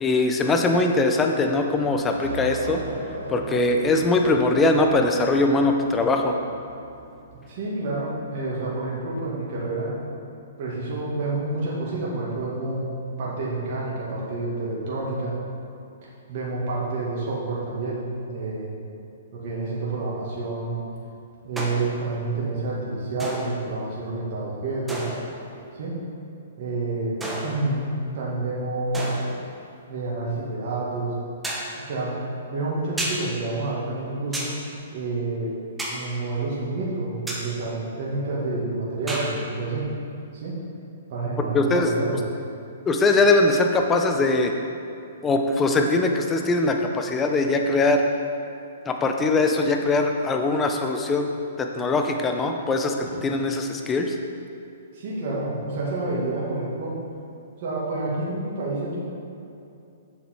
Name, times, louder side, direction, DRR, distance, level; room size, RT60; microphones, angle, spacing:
voice 1, 0.0-2.8 3.3-6.4 41.4-41.9 42.9-44.5 45.2-48.0 48.8-51.3 51.6-54.1, left 2 dB, 15° left, 4 dB, 0.8 m, -21 dB
sound 1, 1.7-8.1, right 2 dB, 80° right, 1.6 m, -39 dB
voice 2, 7.5-10.0 10.6-15.3 16.3-18.7 19.3-20.8 21.4-25.1 25.7-25.9 26.6-29.1 29.9-31.2 31.8-32.2 32.5-34.5 34.9-35.5 35.9-39.9 40.3-40.6 41.1-42.2 54.9-57.0 57.6-59.0, right 2 dB, 50° right, -6 dB, 2.1 m, -28 dB
sound 2, 21.6-22.0 23.2-23.8 24.9-25.5 27.2-27.9 28.9-29.5 31.4-31.8 33.0-33.3 34.3-34.6 35.8-36.1 37.3-37.5 39.1-39.3, right 1 dB, 10° right, 1.2 m, -32 dB
7.3 x 7.0 x 4.6 m, 2.7 s
hypercardioid pair, 125°, 0 cm